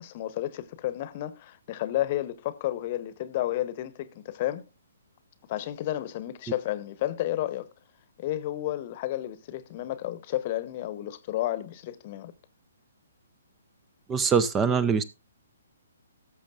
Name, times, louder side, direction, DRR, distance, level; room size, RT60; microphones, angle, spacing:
voice 1, 0.0-4.6 5.5-7.7 8.2-12.3, left 14 dB, 40° left, 1.0 m, -31 dB
voice 2, 14.1-15.0, right 6 dB, 15° right, 0.6 m, -23 dB
17.5 x 7.1 x 2.4 m
figure-of-eight pair, 130°, 0 cm